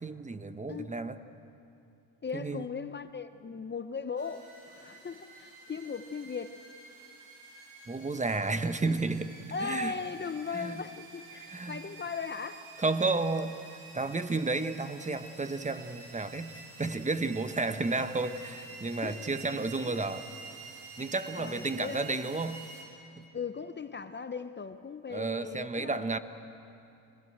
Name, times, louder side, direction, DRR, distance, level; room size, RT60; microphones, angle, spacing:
voice 1, 0.0-1.2 2.3-2.6 7.9-9.3 9.6-9.9 10.5-10.8 11.5-11.8 12.8-13.6 13.9-20.3 21.0-22.7 23.2-23.3 25.1-26.2, right 3 dB, 15° right, 1.1 m, -32 dB
voice 2, 0.7-1.0 2.2-6.6 9.5-12.7 19.0-19.3 19.9-20.0 21.4-22.1 23.3-26.2, left 5 dB, 25° left, 0.9 m, -38 dB
sound 1, 4.2-22.8, right 3 dB, 70° right, 5.1 m, -49 dB
26.5 x 20.5 x 8.0 m
supercardioid pair, 80°, 45 cm